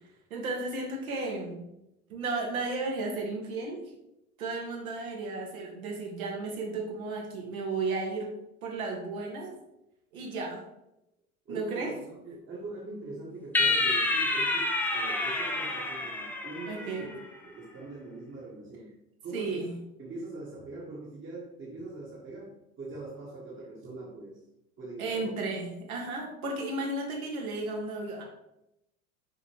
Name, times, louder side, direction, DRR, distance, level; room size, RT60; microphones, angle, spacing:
voice 1, 0.3-1.6 2.1-3.8 4.4-8.3 8.6-9.5 10.1-10.6 11.5-11.9 16.7-17.1 19.3-19.8 25.0-28.2, right 3 dB, 70° right, -1 dB, 2.0 m, -34 dB
voice 2, 11.5-19.0 19.2-19.7 20.0-24.4 24.8-25.4, right 2 dB, 25° right, -4 dB, 1.6 m, -42 dB
sound 1, 13.6-17.1, left 2 dB, 5° left, 0.4 m, -28 dB
6.6 x 5.0 x 3.2 m, 0.85 s
figure-of-eight pair, 80°, 45 cm